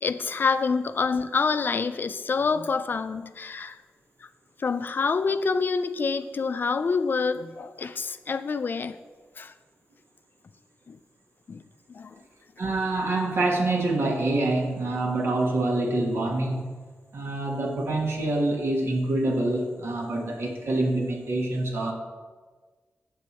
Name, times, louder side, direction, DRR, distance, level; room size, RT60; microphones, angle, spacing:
voice 1, 0.0-3.8 4.6-9.0 9.4-9.5 10.9-11.0 11.5-11.6 11.9-12.2, left 4 dB, 50° left, 11 dB, 0.4 m, -27 dB
voice 2, 12.6-16.7 17.1-21.9, right 2 dB, 75° right, 1 dB, 1.4 m, -26 dB
7.7 x 6.3 x 4.2 m, 1.4 s
wide cardioid pair, 105°, 4 cm